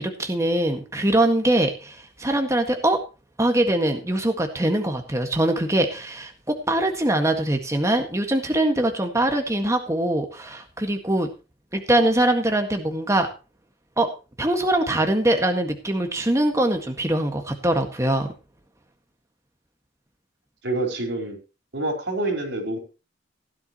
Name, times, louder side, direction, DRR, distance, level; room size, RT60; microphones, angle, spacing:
voice 1, 0.0-3.0 3.4-11.3 11.7-13.3 14.0-14.1 14.4-18.3, right 1 dB, 15° right, 4 dB, 1.8 m, -22 dB
voice 2, 20.6-21.4 21.7-22.8, right 2 dB, 85° right, 4 dB, 4.6 m, -27 dB
17.0 x 11.0 x 3.1 m, 0.31 s
head